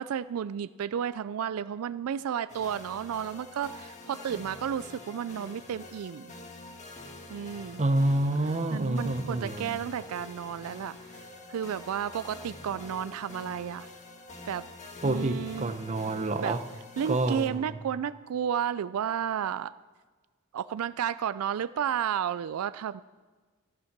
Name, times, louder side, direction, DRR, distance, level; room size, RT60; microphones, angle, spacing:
voice 1, 0.0-6.3 7.3-7.8 8.7-11.2 11.5-13.9 14.5-14.7 15.0-15.7 16.4-16.5 17.0-19.7 20.5-23.0, right 8 dB, 80° right, 15 dB, 0.4 m, -32 dB
sound 1, 2.5-17.5, left 2 dB, 35° left, 1.6 m, -46 dB
voice 2, 7.8-9.8 15.0-16.6 17.1-17.8, right 2 dB, 30° right, 9 dB, 0.7 m, -28 dB
15.0 x 10.0 x 5.9 m, 1.4 s
head